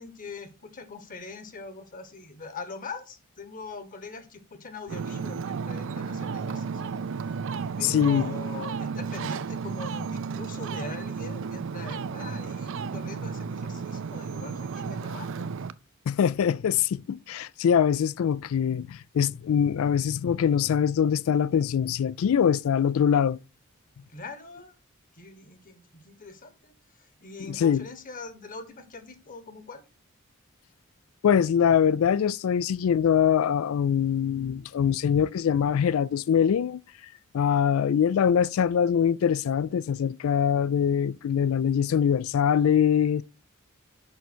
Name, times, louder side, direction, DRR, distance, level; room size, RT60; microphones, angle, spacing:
voice 1, 0.0-7.4 7.8-15.5 24.1-24.7 25.1-29.8, left 3 dB, 40° left, 1.3 m, -42 dB
Ocean, 4.9-15.7, right 5 dB, 65° right, 0.5 m, -33 dB
voice 2, 7.8-8.3 16.1-23.4 27.5-27.8 31.2-36.8 37.3-43.2, left 8 dB, 75° left, 0.3 m, -23 dB
6.8 x 5.6 x 6.1 m
head